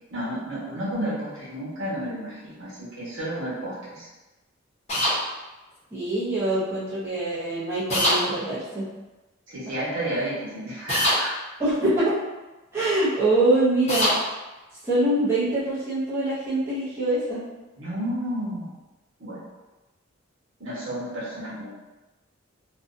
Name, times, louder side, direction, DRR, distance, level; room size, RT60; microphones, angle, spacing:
voice 1, 0.1-4.1 9.5-11.3 17.7-18.7 19.2-19.4 20.6-21.7, right 1 dB, 60° right, -9 dB, 1.1 m, -31 dB
sound 1, 4.9-5.2 7.9-8.2 10.9-11.2 13.9-14.2, left 1 dB, 30° left, 0.8 m, -22 dB
voice 2, 5.9-8.9 11.6-12.2 12.7-14.1 14.8-17.4, right 2 dB, 10° right, -12 dB, 0.7 m, -24 dB
2.6 x 2.3 x 2.5 m, 1.1 s
head